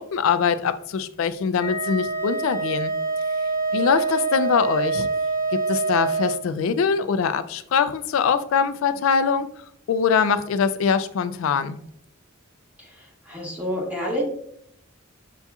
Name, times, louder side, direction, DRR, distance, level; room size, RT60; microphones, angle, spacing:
voice 1, 0.0-2.9 3.7-5.1 5.5-9.5 9.9-11.8, left 6 dB, 65° left, 13 dB, 0.3 m, -23 dB
Wind instrument woodwind instrument, 1.6-6.4, right 3 dB, 15° left, 0.9 m, -25 dB
voice 2, 12.8-14.2, equal, 5° right, -3 dB, 1.1 m, -29 dB
7.0 x 2.8 x 2.3 m, 0.70 s
head